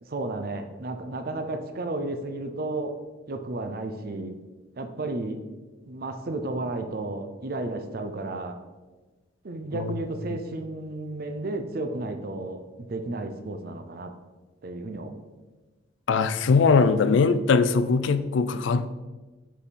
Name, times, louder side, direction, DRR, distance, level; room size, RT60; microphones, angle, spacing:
voice 1, 0.0-3.0 3.3-4.3 4.8-5.4 5.9-8.6 9.4-14.1 14.6-15.2, right 2 dB, 50° right, 7 dB, 0.5 m, -33 dB
voice 2, 16.1-18.9, left 4 dB, 70° left, 11 dB, 0.4 m, -21 dB
5.5 x 4.8 x 4.1 m, 1.2 s
head